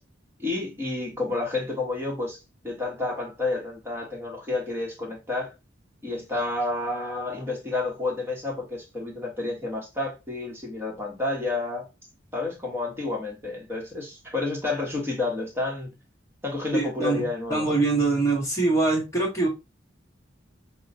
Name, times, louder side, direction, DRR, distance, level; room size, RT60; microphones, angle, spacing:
voice 1, 0.4-2.4 2.6-5.5 6.0-11.9 12.3-15.9 16.4-17.7, left 2 dB, 15° right, 1.1 m, -30 dB
voice 2, 16.7-19.5, right 3 dB, 15° left, 1.1 m, -24 dB
5.4 x 2.1 x 2.6 m
head